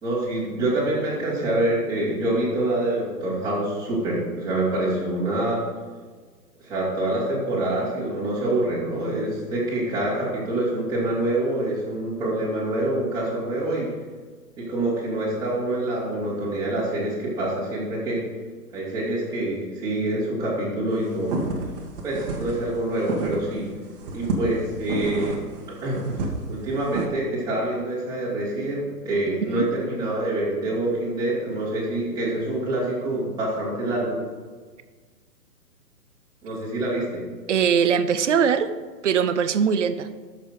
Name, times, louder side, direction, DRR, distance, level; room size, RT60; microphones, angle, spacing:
voice 1, 0.0-5.6 6.6-13.9 14.6-18.2 18.7-21.4 22.0-23.7 24.1-25.4 25.7-26.0 26.5-34.2 36.4-37.2, right 1 dB, 10° right, -9 dB, 3.2 m, -26 dB
sound 1, 21.0-23.6 24.0-27.1, right 3 dB, 35° right, 1.7 m, -30 dB
voice 2, 37.5-38.7 39.0-40.1, right 7 dB, 50° right, 12 dB, 0.6 m, -21 dB
12.0 x 6.8 x 5.0 m, 1.5 s
hypercardioid pair, 145°, 48 cm